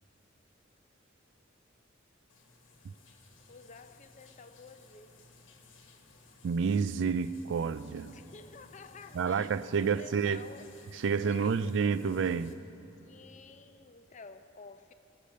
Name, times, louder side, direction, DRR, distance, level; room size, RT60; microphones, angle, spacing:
sound 1, 2.3-12.5, left 3 dB, 85° left, 1.5 m, -58 dB
voice 1, 3.5-5.2 8.1-10.7 11.2-11.9 13.0-14.9, left 4 dB, 40° left, 0.6 m, -52 dB
voice 2, 6.4-8.1 9.1-10.4 10.9-12.6, right 6 dB, 65° right, 0.4 m, -29 dB
20.0 x 6.7 x 6.4 m
head